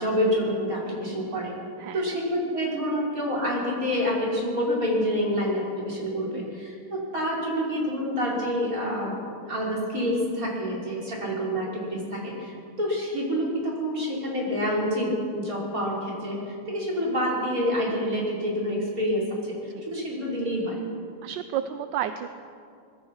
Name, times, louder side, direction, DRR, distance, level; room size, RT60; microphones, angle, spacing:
voice 1, 0.0-1.5 1.9-9.1 9.5-19.6 19.9-20.8, equal, 40° right, -4 dB, 5.7 m, -27 dB
voice 2, 1.8-2.2 6.3-6.6 19.7-19.8 21.2-22.3, right 10 dB, 70° right, 10 dB, 1.3 m, -32 dB
24.5 x 20.5 x 5.7 m, 2.4 s
omnidirectional pair, 2.2 m